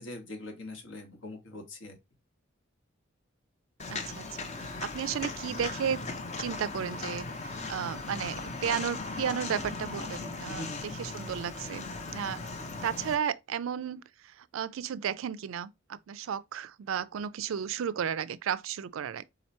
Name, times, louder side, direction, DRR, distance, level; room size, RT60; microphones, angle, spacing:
voice 1, 0.0-1.9 10.5-10.9, left 2 dB, 65° left, 1.2 m, -42 dB
Walk footsteps, 3.8-13.1, left 3 dB, 35° left, 0.6 m, -38 dB
voice 2, 3.9-6.0 6.4-12.5 12.8-19.2, right 8 dB, 80° right, 0.4 m, -34 dB
3.9 x 2.9 x 4.2 m
head